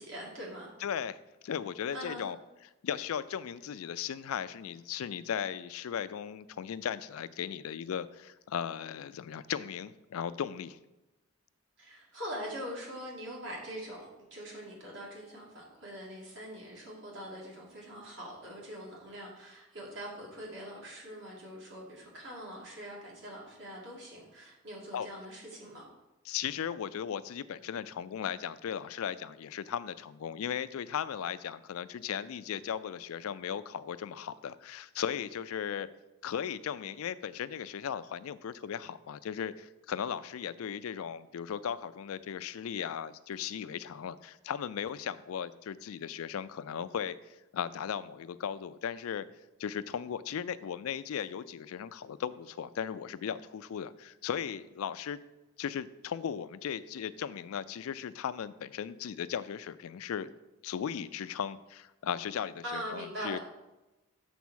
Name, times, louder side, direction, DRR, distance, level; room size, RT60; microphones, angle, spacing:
voice 1, 0.0-0.7 1.9-2.3 11.8-25.9 62.6-63.4, equal, 60° right, -3 dB, 2.3 m, -43 dB
voice 2, 0.8-2.4 2.8-10.8 24.9-25.1 26.3-35.9 36.2-49.3 49.6-55.2 55.6-60.3 60.6-63.4, left 8 dB, 85° left, 15 dB, 0.4 m, -37 dB
7.0 x 4.1 x 6.3 m, 1.0 s
head